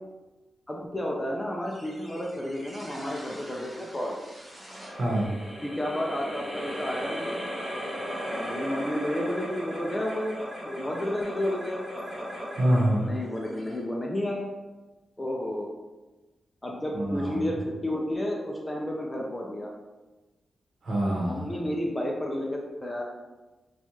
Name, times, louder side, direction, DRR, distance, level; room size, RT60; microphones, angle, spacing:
voice 1, 0.7-4.2 5.6-7.4 8.3-11.9 13.0-14.5 15.2-15.7 16.6-19.7 21.2-23.0, left 1 dB, 15° left, -1 dB, 0.4 m, -31 dB
sound 1, 1.7-14.3, equal, 5° right, 0.9 m, -38 dB
voice 2, 5.0-5.3 12.6-13.1 16.9-17.5 20.8-21.5, right 1 dB, 55° right, -4 dB, 1.1 m, -25 dB
4.4 x 2.3 x 2.9 m, 1.2 s
wide cardioid pair, 175°, 0 cm